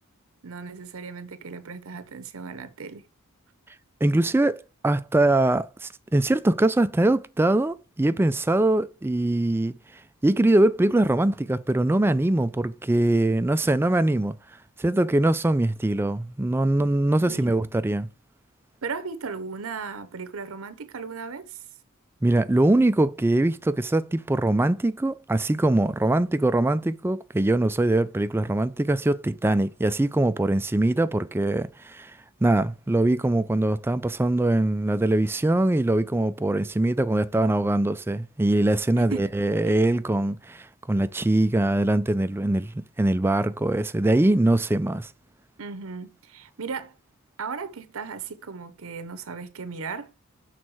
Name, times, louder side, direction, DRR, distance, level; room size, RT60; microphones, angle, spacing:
voice 1, 0.4-3.1 17.2-17.5 18.8-21.6 39.0-39.3 39.7-39.8 45.6-46.9 47.4-50.1, right 5 dB, 70° right, 0.8 m, -36 dB
voice 2, 4.0-9.7 10.2-14.4 14.8-18.1 22.2-32.1 32.4-42.7 43.0-45.1, right 1 dB, 10° right, 0.3 m, -22 dB
6.3 x 4.1 x 6.2 m
head